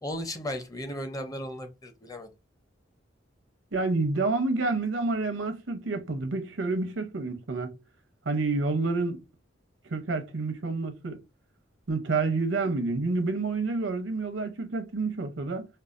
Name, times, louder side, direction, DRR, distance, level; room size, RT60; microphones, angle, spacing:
voice 1, 0.0-2.3, left 1 dB, 20° left, 0.6 m, -35 dB
voice 2, 3.7-7.7 8.3-9.2 9.8-11.2 11.9-15.7, right 3 dB, 80° right, 0.7 m, -28 dB
5.3 x 2.2 x 2.5 m
head